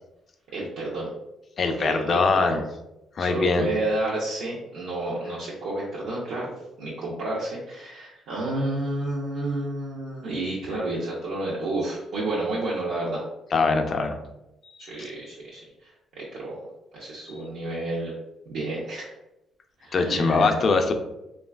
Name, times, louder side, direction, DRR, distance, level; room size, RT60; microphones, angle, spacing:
voice 1, 0.5-1.1 1.6-2.6 3.2-13.2 14.8-16.6 16.9-18.1 18.5-19.2 19.8-20.6, right 2 dB, 85° right, -7 dB, 0.6 m, -30 dB
voice 2, 1.6-2.6 3.2-3.7 13.5-14.2 19.9-20.9, left 4 dB, 50° left, 6 dB, 0.3 m, -22 dB
3.1 x 2.3 x 2.3 m, 0.91 s
cardioid pair, 90°, 0 cm